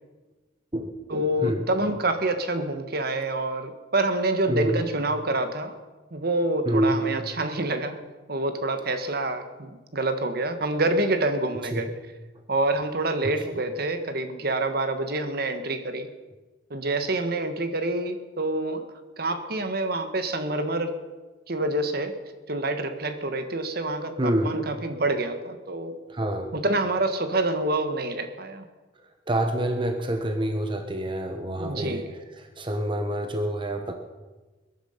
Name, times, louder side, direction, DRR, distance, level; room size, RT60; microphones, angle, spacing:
voice 1, 1.1-5.7 6.1-8.0 8.3-11.9 12.5-16.1 16.7-18.9 19.2-20.9 21.5-22.1 22.5-24.1 24.4-26.0 26.5-28.6 31.6-32.1, right 2 dB, 55° right, 8 dB, 1.4 m, -27 dB
voice 2, 4.5-4.8 6.6-7.0 11.7-11.8 13.2-13.3 24.2-24.5 26.1-26.5 29.3-32.1 32.4-33.9, right 1 dB, 25° right, 5 dB, 1.1 m, -27 dB
21.5 x 10.5 x 5.7 m, 1.2 s
head